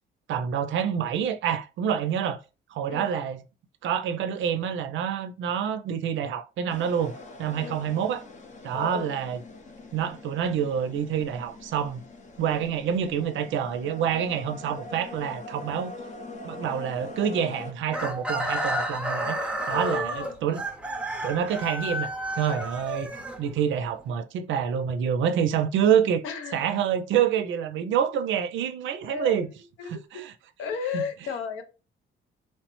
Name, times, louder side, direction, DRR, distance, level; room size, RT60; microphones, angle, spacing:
voice 1, 0.3-2.4 2.7-3.4 3.8-7.1 7.4-8.2 8.6-9.4 9.9-12.0 12.4-15.9 16.4-20.6 21.2-23.1 23.4-26.2 26.5-29.5 29.8-30.3 30.9-31.0, right 8 dB, 75° right, 0.5 m, -27 dB
sound 1, 6.7-17.7, left 2 dB, 40° left, 0.6 m, -43 dB
voice 2, 8.7-9.1 19.7-20.3 26.2-26.6 29.1-29.5 29.8-30.3 30.6-31.6, left 6 dB, 85° left, 0.6 m, -33 dB
Chicken rooster, 17.9-23.9, right 1 dB, 5° right, 0.6 m, -31 dB
3.1 x 2.0 x 3.0 m
cardioid pair, 90°, 20 cm